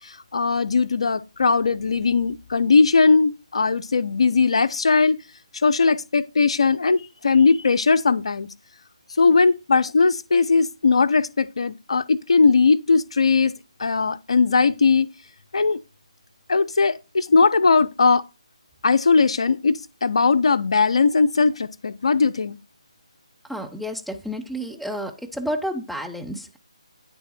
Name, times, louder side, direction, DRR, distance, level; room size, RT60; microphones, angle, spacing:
voice 1, 0.3-5.2 5.6-8.5 9.2-13.5 13.8-15.1 15.5-15.8 16.5-18.2 18.8-22.6, left 4 dB, 60° left, 0.5 m, -19 dB
voice 2, 23.4-26.6, equal, ahead, 0.7 m, -30 dB
9.1 x 3.4 x 4.2 m
figure-of-eight pair, 150°, 3 cm